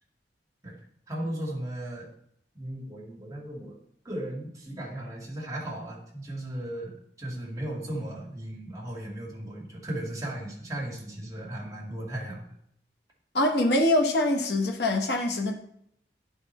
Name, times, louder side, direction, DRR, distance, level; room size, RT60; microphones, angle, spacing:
voice 1, 1.1-2.1 2.5-3.8 4.0-12.5, right 1 dB, 20° right, -2 dB, 1.7 m, -36 dB
voice 2, 13.3-15.5, left 1 dB, 65° left, 2 dB, 0.9 m, -24 dB
11.0 x 3.8 x 4.2 m, 0.70 s
head